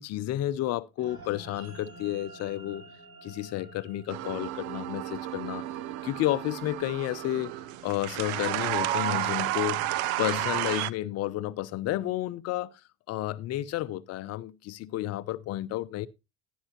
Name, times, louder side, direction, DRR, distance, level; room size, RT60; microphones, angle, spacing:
voice 1, 0.0-2.8 3.2-5.7 6.0-7.5 7.8-9.8 10.2-12.7 13.1-16.1, left 14 dB, 50° left, 0.7 m, -31 dB
sound 1, 1.0-11.6, right 2 dB, 55° right, 4.8 m, -52 dB
sound 2, 4.1-10.9, right 14 dB, 75° right, 0.6 m, -32 dB
12.5 x 10.0 x 2.8 m
supercardioid pair, 100°, 33 cm